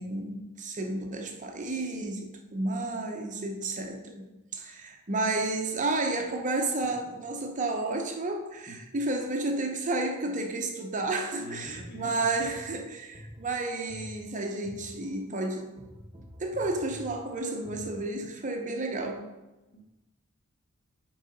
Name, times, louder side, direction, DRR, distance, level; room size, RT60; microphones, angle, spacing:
voice 1, 0.0-4.3 4.5-15.8 16.4-19.3, right 2 dB, 35° right, 3 dB, 0.7 m, -31 dB
voice 2, 11.4-12.7 19.7-19.8, equal, 45° left, 0 dB, 1.4 m, -45 dB
sound 1, 11.5-18.5, equal, 20° right, 1.2 m, -48 dB
6.6 x 4.7 x 5.3 m, 1.0 s
head